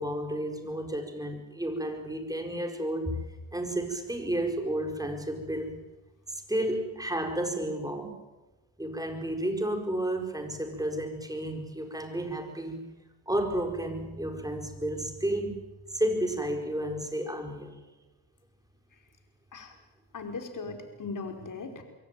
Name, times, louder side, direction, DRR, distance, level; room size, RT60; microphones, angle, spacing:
voice 1, 0.0-3.3 3.5-5.8 6.3-8.2 8.8-12.8 13.3-15.6 15.9-17.8, right 1 dB, 10° right, 5 dB, 4.7 m, -32 dB
voice 2, 20.1-21.8, left 4 dB, 50° left, 5 dB, 5.0 m, -38 dB
23.0 x 17.0 x 9.2 m, 1.1 s
supercardioid pair, 65°, 41 cm